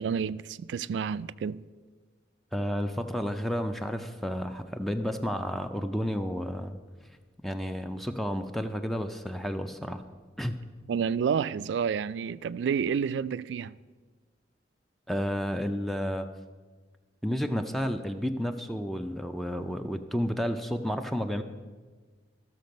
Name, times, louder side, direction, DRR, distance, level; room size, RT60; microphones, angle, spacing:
voice 1, 0.0-1.6 10.9-13.8, right 7 dB, 75° right, 0.3 m, -29 dB
voice 2, 2.5-6.8 7.4-10.0 10.4-10.6 15.1-16.3 17.2-21.4, equal, ahead, 0.4 m, -31 dB
13.5 x 6.6 x 5.2 m
head